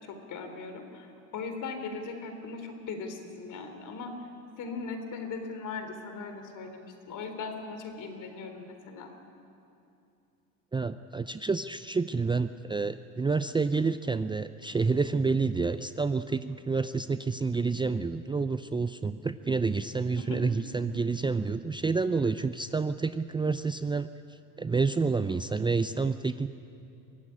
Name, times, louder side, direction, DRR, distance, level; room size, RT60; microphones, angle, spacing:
voice 1, 0.0-4.3 4.6-9.1 20.2-20.4, left 4 dB, 50° left, 6 dB, 3.9 m, -39 dB
voice 2, 10.7-24.1 24.6-26.5, right 4 dB, 10° right, 12 dB, 0.5 m, -29 dB
24.0 x 15.0 x 9.9 m, 2.7 s
hypercardioid pair, 80°, 38 cm